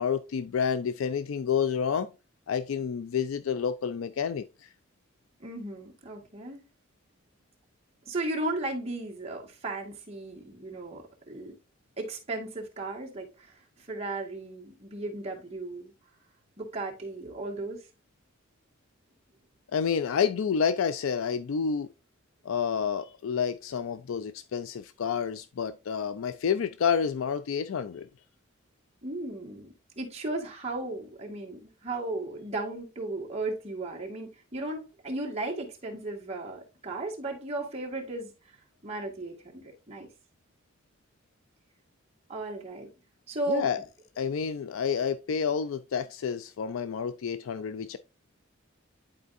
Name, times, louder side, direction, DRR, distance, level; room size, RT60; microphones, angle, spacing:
voice 1, 0.0-2.1 2.5-4.7 19.7-21.9 22.4-28.1 43.5-43.8 44.2-48.0, left 7 dB, 85° left, 0.4 m, -29 dB
voice 2, 5.4-6.6 8.1-11.6 12.0-13.6 13.9-15.9 16.6-17.8 29.0-38.3 38.8-40.1 42.3-42.9 43.3-43.7, right 2 dB, 30° right, 1.8 m, -35 dB
11.0 x 4.4 x 2.6 m
head